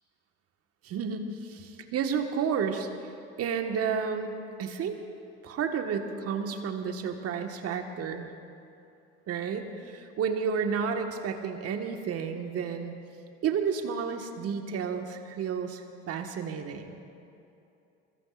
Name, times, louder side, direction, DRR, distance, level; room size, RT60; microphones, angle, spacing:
voice 1, 0.8-2.9 3.4-5.0 5.4-8.3 9.3-12.9 13.4-17.0, right 6 dB, 45° right, 5 dB, 1.6 m, -31 dB
24.0 x 22.0 x 2.5 m, 2.7 s
hypercardioid pair, 70°, 32 cm